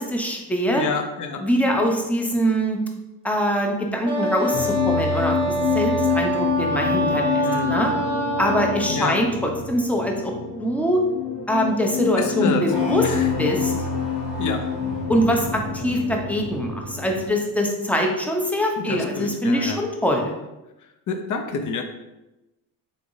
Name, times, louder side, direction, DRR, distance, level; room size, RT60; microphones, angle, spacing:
voice 1, 0.0-0.8 1.4-2.8 3.2-7.9 8.4-10.3 10.6-11.0 11.5-13.1 13.4-13.7 15.1-20.3, equal, 5° left, 1 dB, 0.6 m, -23 dB
voice 2, 0.7-1.4 7.4-7.9 8.9-9.2 12.2-12.6 13.0-13.3 14.4-14.6 18.8-19.8 21.1-21.8, left 4 dB, 50° left, 6 dB, 0.6 m, -28 dB
Wind instrument woodwind instrument, 4.0-8.9, right 1 dB, 15° right, 1.0 m, -25 dB
sound 1, 4.5-17.3, left 6 dB, 75° left, 1.2 m, -27 dB
3.7 x 3.3 x 2.6 m, 0.99 s
cardioid pair, 90°, 41 cm